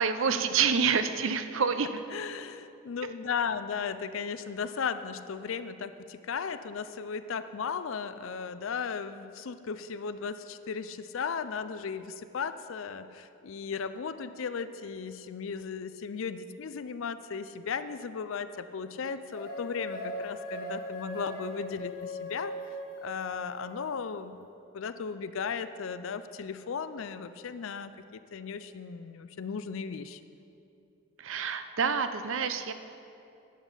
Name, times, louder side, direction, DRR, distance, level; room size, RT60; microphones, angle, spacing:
voice 1, 0.0-1.9 31.2-32.7, right 6 dB, 60° right, 10 dB, 0.6 m, -27 dB
voice 2, 2.1-22.5 23.0-24.5 24.7-30.2, left 6 dB, 65° left, 12 dB, 0.4 m, -36 dB
sound 1, 19.3-23.8, equal, 45° left, 1.8 m, -39 dB
11.0 x 8.1 x 5.6 m, 2.7 s
head